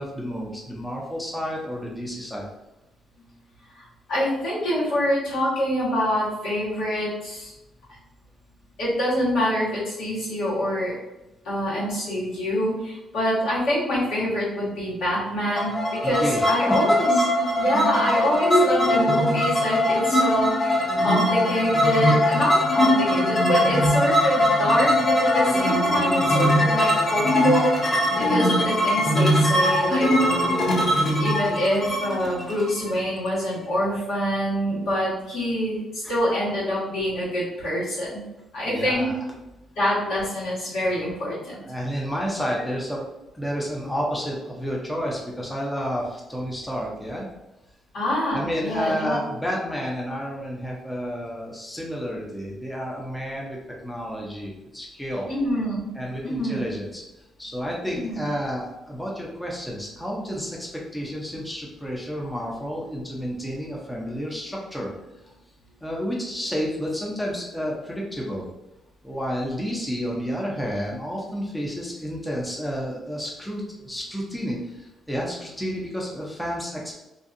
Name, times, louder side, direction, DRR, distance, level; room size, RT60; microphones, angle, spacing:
voice 1, 0.0-2.5 16.0-16.8 36.0-36.1 38.6-39.2 41.7-43.1 43.3-47.3 48.3-53.6 53.8-55.3 55.9-57.0 57.4-64.9 65.2-65.3 65.8-68.4 69.0-76.9, equal, 5° left, -3 dB, 0.6 m, -30 dB
voice 2, 3.7-7.5 8.8-10.9 11.4-17.1 17.6-38.2 38.5-39.1 39.8-41.6 47.9-49.2 55.3-55.9 56.2-56.7 57.9-58.2, equal, 80° left, -8 dB, 1.3 m, -26 dB
sound 1, 15.6-33.3, left 1 dB, 40° left, 0.8 m, -21 dB
2.6 x 2.3 x 2.5 m, 0.96 s
cardioid pair, 90°, 0 cm